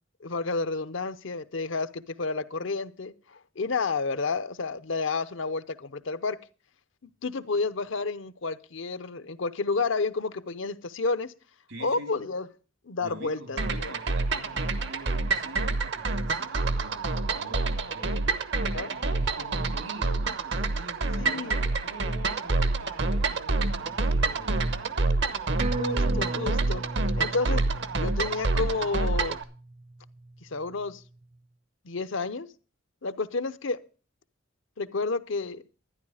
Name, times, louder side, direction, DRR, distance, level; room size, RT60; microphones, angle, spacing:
voice 1, 0.2-6.4 7.0-11.3 11.8-12.5 12.9-13.9 18.7-18.9 21.2-21.6 25.8-26.8 27.2-27.7 28.0-29.4 30.4-31.0 31.8-32.5 33.0-33.8 34.8-35.6, left 4 dB, 70° left, 0.8 m, -30 dB
voice 2, 11.7-12.3 13.0-25.0, right 1 dB, 85° right, 3.5 m, -45 dB
sound 1, 13.6-29.4, right 3 dB, 60° right, 1.0 m, -27 dB
sound 2, 25.6-30.5 30.9-31.0, right 3 dB, 35° right, 0.5 m, -36 dB
12.0 x 10.5 x 4.8 m
head